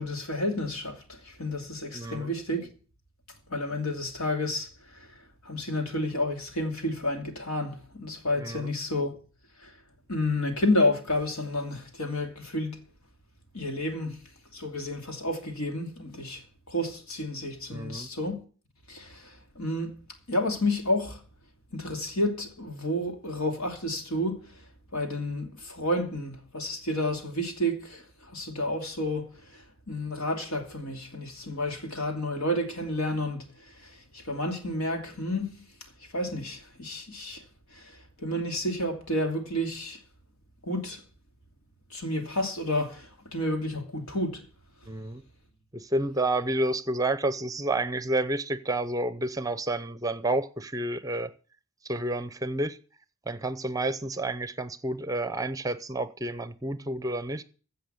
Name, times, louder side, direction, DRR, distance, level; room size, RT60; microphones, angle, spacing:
voice 1, 0.0-2.7 3.5-5.1 5.4-9.2 9.6-9.7 10.1-12.8 13.5-14.2 14.5-18.4 18.9-20.0 20.3-21.2 21.7-24.5 24.9-33.4 33.8-35.6 36.1-37.4 37.7-40.0 40.6-41.0 41.9-44.4, left 1 dB, 80° left, 2.7 m, -30 dB
voice 2, 1.9-2.3 8.4-8.7 17.7-18.1 44.9-45.2 45.7-51.3 51.8-52.8 53.3-57.4, right 2 dB, 15° right, 0.6 m, -30 dB
16.0 x 5.6 x 7.9 m
head